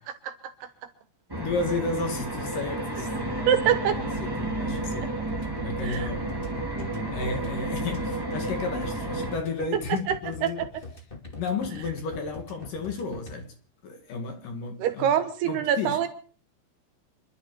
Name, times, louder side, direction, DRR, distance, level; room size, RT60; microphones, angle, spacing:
sound 1, 1.3-9.4, right 2 dB, 15° right, 0.8 m, -31 dB
voice 1, 1.4-5.1 5.6-6.5 7.1-10.7 11.4-13.5 13.8-15.1 15.4-16.0, left 4 dB, 55° left, 3.0 m, -33 dB
voice 2, 3.5-4.0 5.8-6.1 6.8-6.9 10.1-10.7 14.8-16.1, right 9 dB, 70° right, 3.2 m, -25 dB
sound 2, 5.3-13.3, left 3 dB, 35° left, 0.9 m, -42 dB
27.0 x 11.5 x 4.6 m
omnidirectional pair, 5.0 m